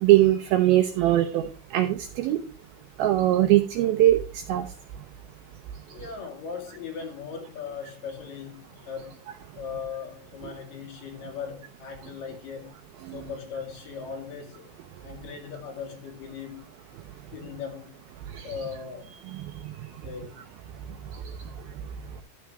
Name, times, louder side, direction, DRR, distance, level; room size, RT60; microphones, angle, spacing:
voice 1, 0.0-1.5 1.7-2.4 3.0-4.2 4.5-4.6, right 14 dB, 80° right, 2.2 m, -20 dB
voice 2, 5.9-9.3 9.6-12.8 13.1-14.7 15.0-16.7 17.3-18.0 18.4-19.1 20.0-20.4, left 6 dB, 55° left, 3.4 m, -38 dB
12.0 x 7.0 x 3.2 m
omnidirectional pair, 4.9 m